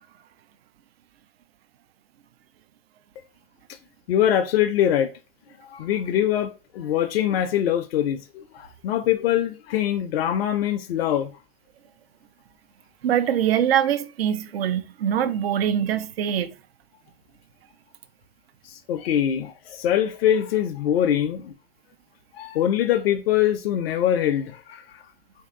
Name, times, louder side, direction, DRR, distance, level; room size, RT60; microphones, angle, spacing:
voice 1, 4.1-5.1 5.7-11.3 18.7-21.5 22.3-25.0, left 10 dB, 80° left, 0.5 m, -23 dB
voice 2, 13.0-16.5, right 9 dB, 85° right, 0.6 m, -23 dB
3.4 x 2.7 x 3.6 m
hypercardioid pair, 105°, 30 cm